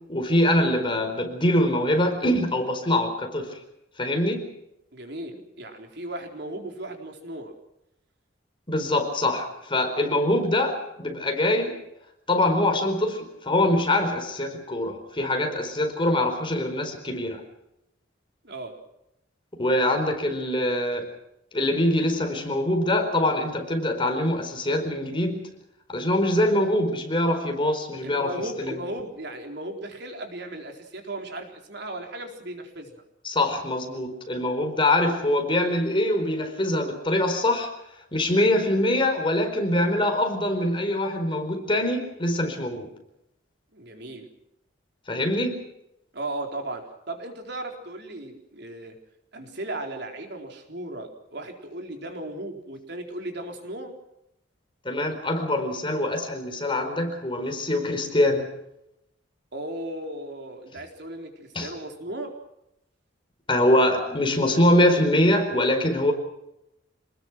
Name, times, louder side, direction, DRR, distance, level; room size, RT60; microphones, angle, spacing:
voice 1, 0.1-3.5 4.0-4.4 8.7-11.8 12.3-17.4 19.6-21.1 21.5-25.5 25.9-28.3 28.6-28.8 33.2-37.7 38.1-42.9 45.1-45.6 54.8-58.5 61.5-61.7 63.5-66.1, left 1 dB, 30° left, 5 dB, 4.6 m, -24 dB
voice 2, 4.9-7.5 18.4-18.7 28.0-32.9 43.7-44.3 46.1-49.0 49.3-53.9 59.5-62.3, right 1 dB, 65° right, 3 dB, 4.1 m, -36 dB
27.0 x 20.5 x 6.1 m, 0.84 s
head